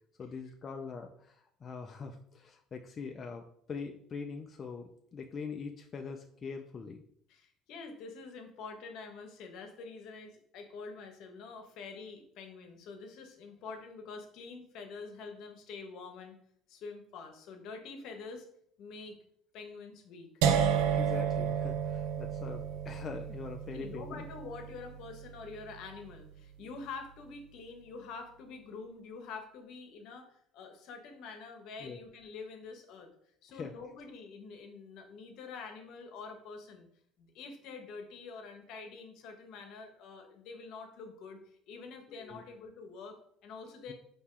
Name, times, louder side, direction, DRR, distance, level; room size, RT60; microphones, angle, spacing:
voice 1, 0.2-7.0 20.9-24.3 31.8-32.0 33.5-33.7 42.1-42.4 43.9-44.0, left 5 dB, 35° left, 4 dB, 0.3 m, -43 dB
voice 2, 7.3-16.4 16.7-18.5 18.8-19.2 19.5-20.3 23.7-33.1 33.4-36.9 37.2-43.9, left 4 dB, 70° left, 5 dB, 0.8 m, -46 dB
sound 1, 20.4-26.3, right 8 dB, 85° right, 0.4 m, -32 dB
4.3 x 2.9 x 3.7 m, 0.68 s
cardioid pair, 110°, 0 cm